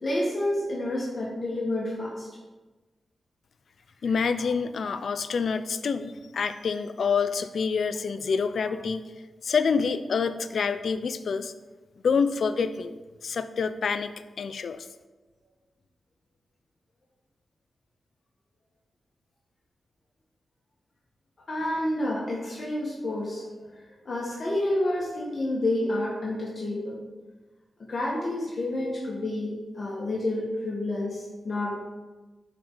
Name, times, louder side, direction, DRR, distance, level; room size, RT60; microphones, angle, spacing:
voice 1, 0.0-2.3 4.4-4.5 4.8-5.0 21.5-23.4 24.1-27.0 27.9-31.8, left 1 dB, 45° left, -4 dB, 1.8 m, -29 dB
voice 2, 4.0-9.1 9.4-11.5 12.0-14.9, left 5 dB, 70° left, 11 dB, 0.5 m, -27 dB
11.5 x 4.7 x 3.9 m, 1.2 s
wide cardioid pair, 90°, 0 cm